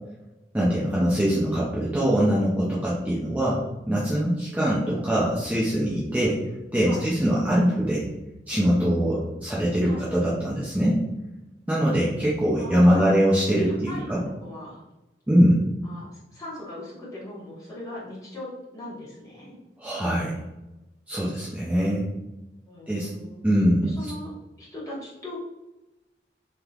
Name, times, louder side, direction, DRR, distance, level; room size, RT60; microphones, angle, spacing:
voice 1, 0.5-3.6 3.9-6.4 6.7-8.1 8.5-11.0 11.7-14.2 15.3-15.6 19.8-20.3 21.1-22.1 22.9-23.1 23.4-23.9, equal, 10° right, -7 dB, 0.4 m, -22 dB
voice 2, 12.5-13.2 13.9-14.1 14.4-14.8 15.8-19.6 22.7-23.4 23.8-24.3 24.6-25.4, left 1 dB, 20° left, -7 dB, 1.1 m, -39 dB
3.3 x 2.8 x 2.3 m, 0.99 s
head